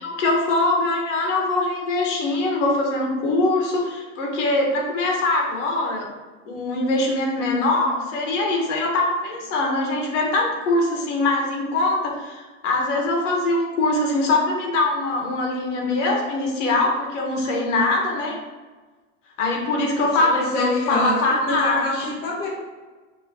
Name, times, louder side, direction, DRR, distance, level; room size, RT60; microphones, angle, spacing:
voice 1, 0.0-6.1 6.5-18.4 19.4-22.1, left 2 dB, 80° left, 0 dB, 1.3 m, -22 dB
voice 2, 20.3-21.1 21.5-22.5, left 1 dB, 25° left, -4 dB, 0.8 m, -25 dB
6.1 x 3.0 x 2.7 m, 1.3 s
supercardioid pair, 175°, 36 cm